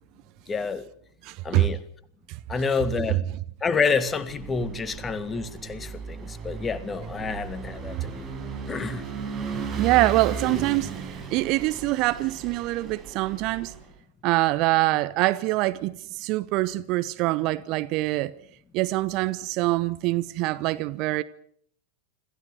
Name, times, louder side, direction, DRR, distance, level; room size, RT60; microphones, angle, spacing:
voice 1, 0.5-0.9 1.4-1.8 2.5-3.2 3.6-8.3 8.7-9.1, left 5 dB, 20° left, 1.8 m, -28 dB
voice 2, 1.2-1.7 2.3-2.4 3.1-3.2 9.8-13.7 14.2-18.3 18.7-21.2, right 19 dB, 40° right, 1.0 m, -24 dB
Vehicle / Engine, 4.1-13.9, right 5 dB, 25° right, 6.1 m, -36 dB
26.0 x 15.5 x 9.2 m
figure-of-eight pair, 90°, 0 cm